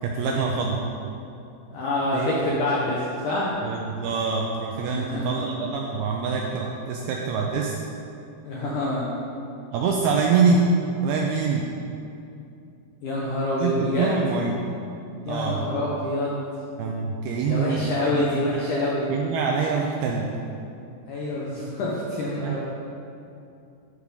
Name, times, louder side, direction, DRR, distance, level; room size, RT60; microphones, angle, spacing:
voice 1, 0.0-0.8 2.1-2.4 3.6-7.7 9.7-10.6 11.0-11.6 13.6-14.5 15.3-15.7 16.8-18.5 19.1-20.3 22.4-22.6, right 5 dB, 85° right, 0 dB, 2.3 m, -25 dB
voice 2, 1.7-3.5 4.9-5.4 8.4-9.1 13.0-14.2 15.3-16.4 17.5-19.1 21.1-22.6, left 1 dB, 75° left, -5 dB, 1.9 m, -26 dB
14.5 x 5.0 x 5.3 m, 2.6 s
omnidirectional pair, 5.1 m